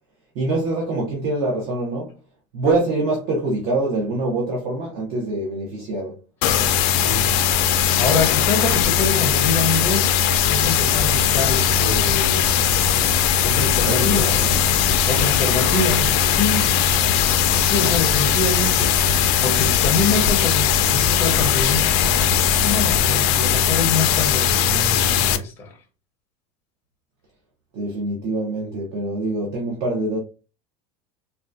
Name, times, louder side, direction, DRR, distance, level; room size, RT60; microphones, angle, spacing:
voice 1, 0.3-2.1 2.5-6.2 13.9-14.5 27.7-30.2, right 2 dB, 40° right, 0.7 m, -24 dB
sound 1, 6.4-25.4, left 8 dB, 50° left, 0.4 m, -19 dB
voice 2, 6.9-10.1 10.4-12.5 13.3-14.4 14.8-16.7 17.6-25.8, left 3 dB, 15° left, 0.6 m, -26 dB
sound 2, 10.4-23.1, left 2 dB, 20° right, 1.1 m, -32 dB
3.7 x 2.2 x 2.5 m
cardioid pair, 170°, 16 cm